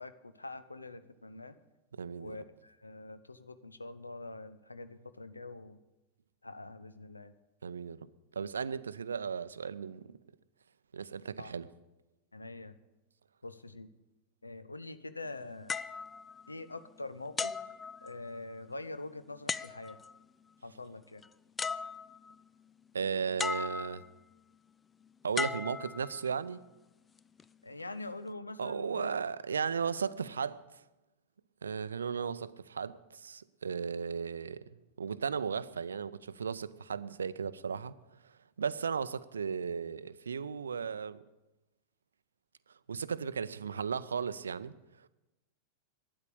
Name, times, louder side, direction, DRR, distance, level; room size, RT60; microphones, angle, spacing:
voice 1, 0.0-1.6 2.2-5.8 6.4-7.3 11.4-11.5 12.3-12.8 13.4-13.9 14.4-15.8 16.5-17.6 18.0-20.0 20.6-21.2 27.6-29.1, left 2 dB, 80° left, 0.7 m, -44 dB
voice 2, 1.9-2.4 7.6-8.0 8.3-10.2 10.9-11.7 22.9-24.0 25.2-26.6 28.6-30.8 31.6-41.2 42.9-45.1, right 6 dB, 70° right, 0.5 m, -36 dB
sound 1, 15.7-16.9 17.4-18.5 19.5-20.2 21.2-21.3 21.6-22.4 23.4-24.2 25.3-26.5 27.2-27.4, left 5 dB, 15° left, 0.3 m, -37 dB
12.0 x 9.7 x 6.9 m
figure-of-eight pair, 90°, 0 cm